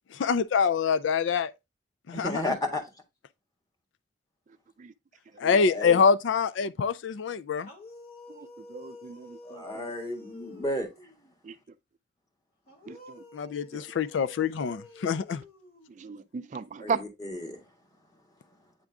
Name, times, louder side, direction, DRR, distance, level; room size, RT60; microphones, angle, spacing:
voice 1, 0.1-1.5 2.1-2.5 5.4-7.7 13.3-15.4, left 6 dB, 85° left, 0.4 m, -25 dB
voice 2, 2.1-2.8 5.7-6.0 9.4-10.9 16.8-17.6, left 1 dB, 20° left, 1.7 m, -33 dB
sound 1, 7.6-11.3 12.7-16.3, left 2 dB, 55° left, 1.5 m, -50 dB
voice 3, 8.4-9.9 11.4-11.5 12.9-13.2 13.7-13.8 16.0-17.0, right 5 dB, 40° right, 0.4 m, -36 dB
8.9 x 3.6 x 3.5 m
head